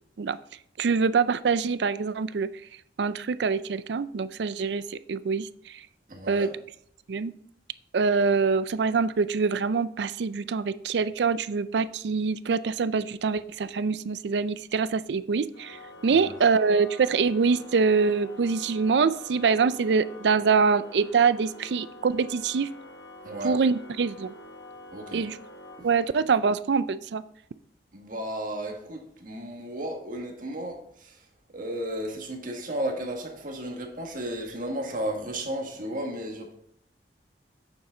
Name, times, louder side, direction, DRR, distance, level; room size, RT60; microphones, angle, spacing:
voice 1, 0.8-2.5 3.0-5.5 6.3-6.5 7.1-7.3 7.9-22.7 23.4-24.3 25.1-25.4 25.8-27.2, right 5 dB, 70° right, 15 dB, 0.4 m, -24 dB
voice 2, 6.1-6.5 16.1-16.3 23.2-23.6 24.9-25.3 25.8-25.9 27.9-31.2 31.5-36.5, right 1 dB, 50° right, 2 dB, 1.7 m, -34 dB
Organ, 15.5-26.5, left 1 dB, 85° left, 1.1 m, -46 dB
8.7 x 7.1 x 3.8 m, 0.67 s
head